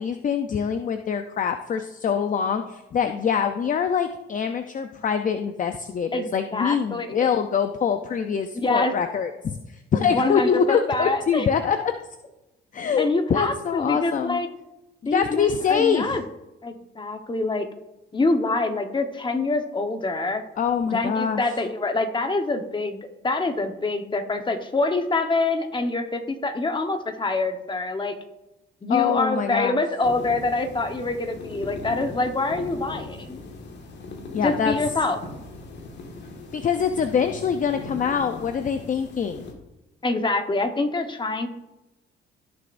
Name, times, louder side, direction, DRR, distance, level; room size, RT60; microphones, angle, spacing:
voice 1, 0.0-11.9 12.7-14.4 15.1-16.2 20.6-21.4 28.9-29.8 34.3-34.7 36.5-39.5, left 7 dB, 40° left, 8 dB, 0.6 m, -24 dB
voice 2, 6.1-7.3 8.6-8.9 10.0-11.5 13.0-14.5 15.1-16.2 16.6-17.7 18.1-20.4 20.9-23.0 23.2-28.1 28.8-33.4 34.4-35.2 40.0-41.5, left 2 dB, 25° left, 6 dB, 1.1 m, -25 dB
sound 1, 30.0-39.5, left 3 dB, 60° left, 1.8 m, -39 dB
16.5 x 6.9 x 2.6 m, 0.97 s
cardioid pair, 90°, 20 cm